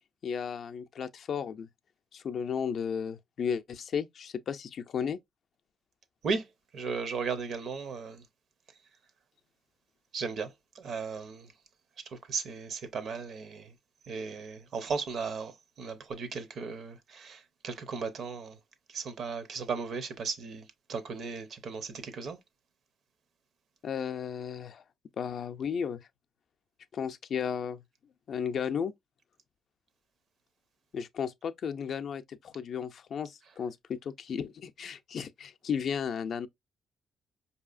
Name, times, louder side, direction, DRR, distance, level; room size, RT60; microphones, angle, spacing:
voice 1, 0.2-1.7 2.1-5.2 23.8-24.8 25.2-26.1 26.9-27.8 28.3-28.9 30.9-36.5, left 7 dB, 60° left, 0.4 m, -34 dB
voice 2, 6.7-8.2 10.1-11.5 12.3-13.7 14.1-15.5 15.8-18.5 18.9-22.4, right 5 dB, 60° right, 0.7 m, -36 dB
4.7 x 2.7 x 2.4 m
cardioid pair, 90°, 0 cm